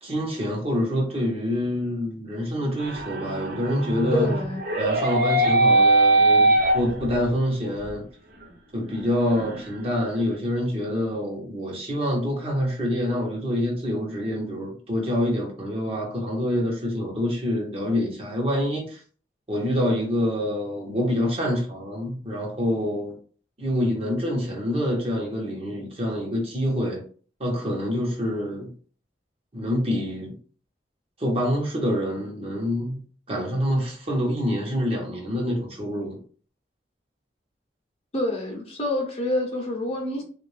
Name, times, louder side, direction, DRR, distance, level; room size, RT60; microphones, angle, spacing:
voice 1, 0.0-4.3 4.8-8.1 8.7-19.0 19.5-23.2 23.6-27.0 27.4-28.7 29.5-30.4 31.2-33.0 33.3-36.2, equal, 35° right, 1.1 m, -26 dB
sound 1, 2.8-7.4 7.8-7.9 8.4-8.5 8.8-10.1, right 2 dB, 55° right, 0.7 m, -21 dB
voice 2, 4.1-4.6 38.1-40.2, left 1 dB, 35° left, 0.9 m, -27 dB
3.5 x 2.5 x 3.3 m
head